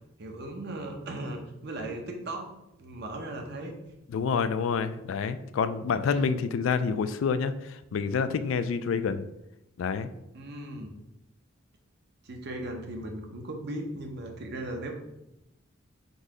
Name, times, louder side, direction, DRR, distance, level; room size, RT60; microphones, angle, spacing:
voice 1, 0.2-2.5 2.8-3.8 6.1-6.3 10.3-10.9 12.2-14.9, right 1 dB, 55° right, 3 dB, 0.7 m, -37 dB
voice 2, 4.1-9.2 9.8-10.1, left 5 dB, 70° left, 12 dB, 0.3 m, -28 dB
4.0 x 2.7 x 4.8 m, 0.87 s
head